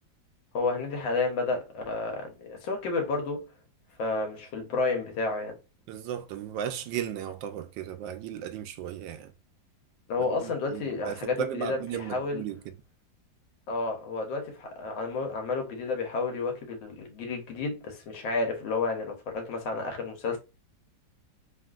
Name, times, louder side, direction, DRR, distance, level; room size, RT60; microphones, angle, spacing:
voice 1, 0.5-3.4 4.0-5.6 10.1-12.4 13.7-20.4, left 3 dB, 90° left, 1.7 m, -31 dB
voice 2, 5.9-9.3 10.4-12.7, right 9 dB, 85° right, 1.3 m, -35 dB
3.4 x 2.5 x 2.4 m
omnidirectional pair, 2.0 m